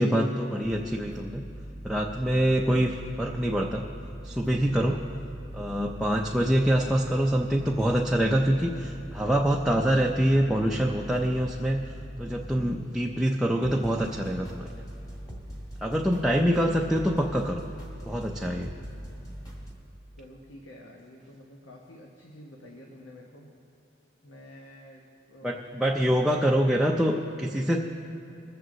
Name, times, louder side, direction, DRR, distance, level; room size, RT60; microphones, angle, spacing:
voice 1, 0.0-1.4 1.8-3.8 4.2-5.0 5.5-11.8 12.2-14.7 15.8-17.6 18.0-18.7 25.4-27.8, equal, ahead, -1 dB, 0.5 m, -25 dB
sound 1, 0.6-19.7, equal, 20° left, 1.7 m, -42 dB
voice 2, 20.2-23.5 24.2-25.6, left 1 dB, 85° left, -1 dB, 1.2 m, -49 dB
21.5 x 7.9 x 3.8 m, 2.9 s
head